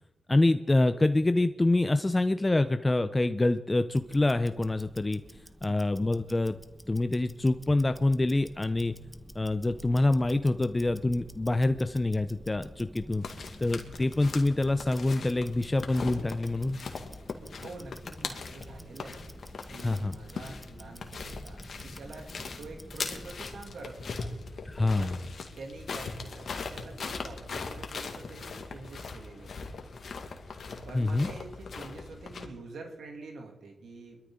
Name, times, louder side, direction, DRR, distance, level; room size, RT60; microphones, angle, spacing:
voice 1, 0.3-5.2 5.6-6.6 6.9-8.9 9.3-13.2 13.6-16.8 19.8-20.2 24.6-25.2 30.9-31.3, left 2 dB, 25° left, 10 dB, 0.7 m, -26 dB
Tick-tock, 3.9-23.8, equal, ahead, 1.1 m, -49 dB
sound 1, 13.2-32.5, left 4 dB, 65° left, 2.0 m, -40 dB
voice 2, 17.6-19.4 19.7-24.4 24.9-25.1 25.6-29.8 30.9-34.2, right 3 dB, 80° right, 1 dB, 2.8 m, -46 dB
23.5 x 13.0 x 3.9 m, 1.1 s
cardioid pair, 55°, 0 cm